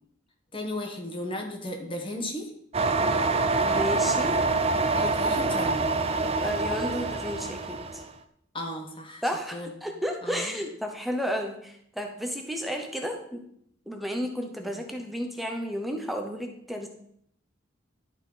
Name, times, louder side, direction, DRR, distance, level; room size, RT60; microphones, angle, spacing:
voice 1, 0.5-2.5 4.9-5.9 8.5-9.2 9.5-9.7 10.2-10.6 14.6-14.8, left 1 dB, 25° left, 2 dB, 1.3 m, -35 dB
sound 1, 2.7-8.0, right 3 dB, 30° right, 0.6 m, -26 dB
voice 2, 3.6-4.4 6.4-8.0 9.2-13.4 13.9-16.9, equal, ahead, 3 dB, 0.8 m, -32 dB
11.0 x 4.4 x 5.5 m, 0.71 s
head